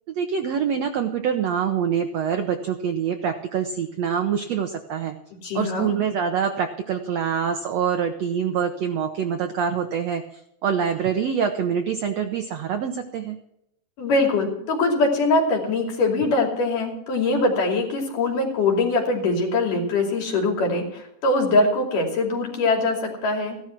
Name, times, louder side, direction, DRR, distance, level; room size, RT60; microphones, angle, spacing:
voice 1, 0.1-5.1 5.5-13.4, right 7 dB, 90° right, 6 dB, 1.4 m, -25 dB
voice 2, 5.4-5.9 14.0-23.6, left 2 dB, 60° left, 1 dB, 4.2 m, -22 dB
16.0 x 12.0 x 4.5 m, 0.78 s
omnidirectional pair, 4.3 m